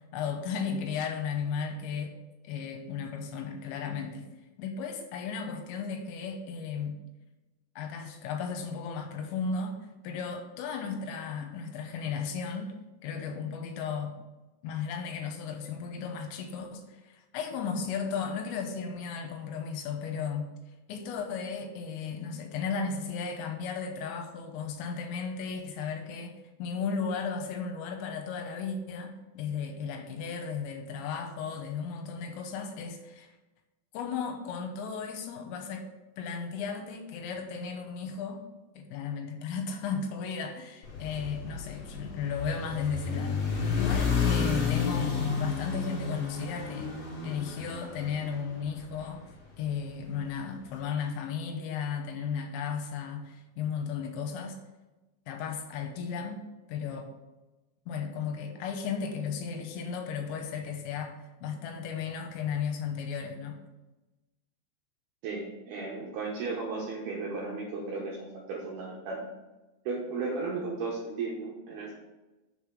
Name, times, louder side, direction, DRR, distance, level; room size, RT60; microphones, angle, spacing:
voice 1, 0.1-2.1 2.4-4.3 4.6-7.0 7.8-9.8 10.0-12.8 13.0-14.1 14.6-20.5 20.9-33.3 33.9-35.9 36.2-38.4 38.7-47.0 47.2-49.2 49.6-54.6 55.3-57.1 57.9-63.6, left 6 dB, 80° left, 4 dB, 3.4 m, -35 dB
sound 1, 40.8-49.2, left 5 dB, 55° left, 2.7 m, -31 dB
voice 2, 65.2-69.2 69.9-71.9, right 3 dB, 75° right, -3 dB, 2.4 m, -35 dB
7.1 x 5.5 x 6.2 m, 1.1 s
omnidirectional pair, 5.9 m